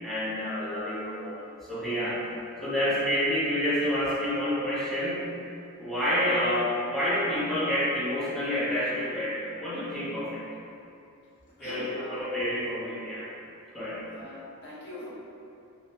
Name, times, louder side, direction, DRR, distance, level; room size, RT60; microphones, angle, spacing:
voice 1, 0.0-2.2 2.6-5.3 5.8-10.4 11.6-13.2 13.7-14.0, equal, ahead, -11 dB, 0.6 m, -28 dB
voice 2, 11.6-12.2 14.1-15.1, left 1 dB, 50° left, -10 dB, 0.8 m, -42 dB
2.5 x 2.1 x 2.7 m, 2.6 s
head